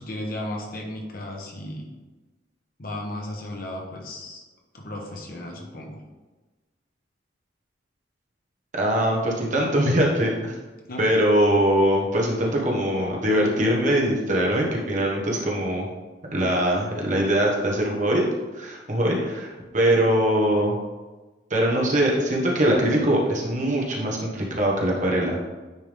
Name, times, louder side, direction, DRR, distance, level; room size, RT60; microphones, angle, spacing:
voice 1, 0.0-1.9 2.8-4.4 4.7-6.0 10.9-11.0, left 1 dB, 50° left, 0 dB, 1.2 m, -34 dB
voice 2, 8.7-10.5 11.0-15.9 16.3-18.2 18.5-20.8 21.5-25.4, right 1 dB, 45° right, -1 dB, 1.3 m, -22 dB
9.5 x 3.5 x 3.5 m, 1.2 s
head